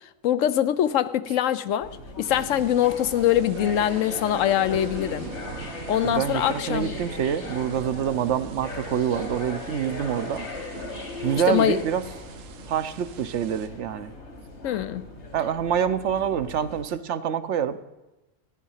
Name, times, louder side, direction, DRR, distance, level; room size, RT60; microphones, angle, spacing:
voice 1, 0.2-1.9 2.2-5.3 5.9-6.9 11.5-11.8 14.6-15.1, left 11 dB, 85° left, 1.0 m, -23 dB
sound 1, 1.8-16.8, left 2 dB, 65° left, 2.1 m, -38 dB
sound 2, 2.3-13.7, right 8 dB, 90° right, 1.1 m, -43 dB
voice 2, 6.0-10.5 11.2-12.0 12.7-14.1 15.3-17.8, right 8 dB, 70° right, 1.0 m, -26 dB
14.0 x 10.0 x 5.6 m
omnidirectional pair, 1.3 m